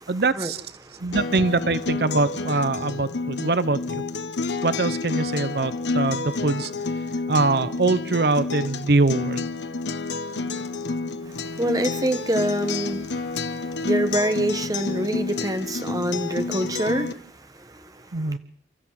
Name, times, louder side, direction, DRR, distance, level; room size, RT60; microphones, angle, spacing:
voice 1, 0.1-0.6 1.0-4.0 4.6-6.7 7.3-9.5 18.1-18.4, right 3 dB, 65° right, 14 dB, 0.8 m, -23 dB
voice 2, 0.8-1.2 11.2-18.4, right 1 dB, 20° right, 9 dB, 1.4 m, -27 dB
Acoustic guitar, 1.1-17.1, left 3 dB, 85° left, 1.3 m, -29 dB
29.5 x 13.5 x 7.7 m, 0.68 s
head